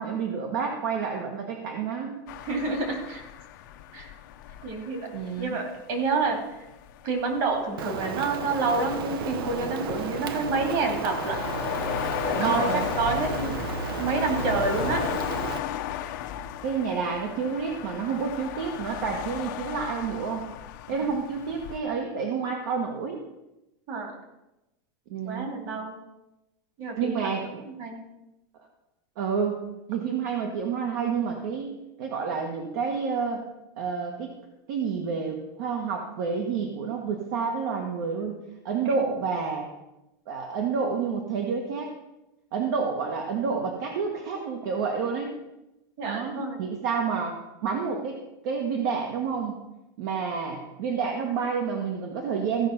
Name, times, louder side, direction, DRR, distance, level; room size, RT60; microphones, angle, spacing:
voice 1, 0.0-2.2 5.1-5.6 12.3-12.8 16.6-20.5 20.9-23.2 25.1-25.5 27.0-27.6 29.2-33.4 33.8-34.3 34.7-39.7 40.3-41.9 42.5-45.3 46.0-47.4 47.6-48.2 48.4-49.6 50.0-52.7, right 5 dB, 55° right, 2 dB, 1.4 m, -29 dB
sound 1, 2.3-21.8, left 9 dB, 55° left, 0.7 m, -35 dB
voice 2, 2.4-3.2 3.9-4.1 4.6-5.1 5.4-6.4 7.0-11.4 12.2-13.6 14.0-15.0 23.9-24.1 25.2-26.0 26.8-27.3 27.8-28.1 38.8-39.0 46.0-46.6, right 3 dB, 40° right, 3 dB, 2.5 m, -28 dB
Rain, 7.8-15.6, right 6 dB, 80° right, 0.9 m, -34 dB
15.0 x 5.4 x 5.9 m, 0.96 s
supercardioid pair, 175°, 12 cm